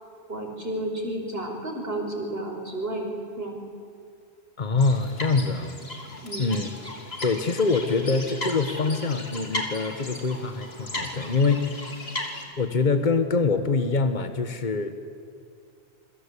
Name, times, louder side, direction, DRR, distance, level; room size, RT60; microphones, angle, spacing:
voice 1, 0.3-3.1 3.4-3.6 6.2-6.6, right 1 dB, 65° right, 1 dB, 5.7 m, -32 dB
voice 2, 4.6-5.8 6.4-6.7 7.2-11.8 12.6-14.9, left 4 dB, 45° left, 9 dB, 1.6 m, -24 dB
sound 1, 4.8-12.4, left 2 dB, 65° left, 3.5 m, -36 dB
28.0 x 24.5 x 8.5 m, 2.4 s
omnidirectional pair, 1.1 m